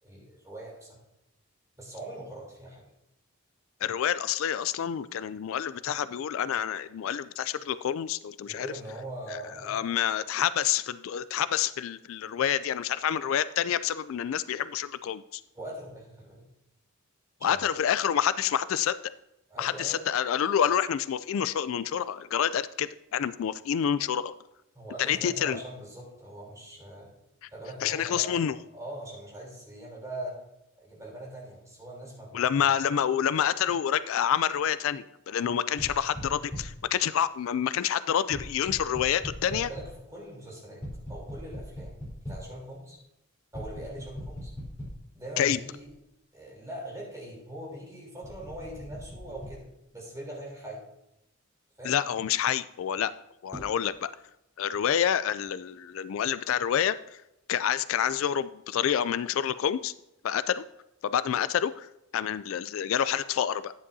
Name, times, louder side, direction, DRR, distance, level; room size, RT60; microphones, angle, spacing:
voice 1, 0.0-1.0 1.8-2.8 8.4-9.9 15.5-16.4 17.4-17.7 19.5-20.1 24.7-27.1 27.5-28.3 28.7-30.4 30.8-32.7 39.5-40.8 41.1-41.9 42.3-43.0 43.5-44.5 45.1-45.9 46.3-49.6 49.9-50.8 51.8-51.9, right 1 dB, 15° right, -3 dB, 3.3 m, -42 dB
voice 2, 3.8-8.7 9.3-15.4 17.4-19.0 19.6-24.3 25.0-25.6 27.4-27.5 27.8-28.6 32.3-39.7 45.4-45.6 51.8-53.1 53.4-54.1 54.6-57.2 57.5-59.9 60.2-60.6 61.0-63.7, left 9 dB, 70° left, 15 dB, 0.3 m, -28 dB
sound 1, 35.8-36.9 38.3-40.0 40.8-42.5 43.5-45.2 45.8-45.9 48.2-49.6 53.5-53.7, equal, 15° left, 3.8 m, -40 dB
11.0 x 9.7 x 2.7 m, 0.86 s
head